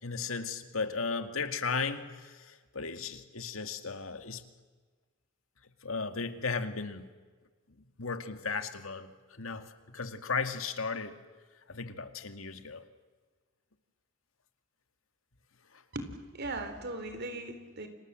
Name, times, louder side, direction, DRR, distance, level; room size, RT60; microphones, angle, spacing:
voice 1, 0.0-4.4 5.8-7.1 8.0-11.2 11.7-12.8 15.7-15.8, left 4 dB, 85° left, 2.2 m, -35 dB
voice 2, 15.9-17.9, right 2 dB, 55° right, 3.8 m, -38 dB
30.0 x 26.0 x 7.6 m
head